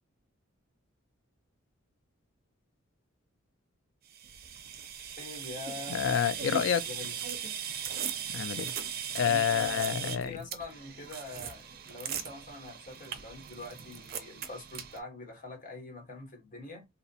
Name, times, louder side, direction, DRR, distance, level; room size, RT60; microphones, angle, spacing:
sound 1, 4.1-15.0, right 8 dB, 45° right, 0.4 m, -39 dB
voice 1, 5.2-6.1 6.9-7.2 9.2-16.9, left 2 dB, 40° left, 1.1 m, -44 dB
voice 2, 5.9-6.8 8.3-8.7 9.1-10.4, left 8 dB, 65° left, 0.3 m, -28 dB
2.7 x 2.1 x 2.7 m
head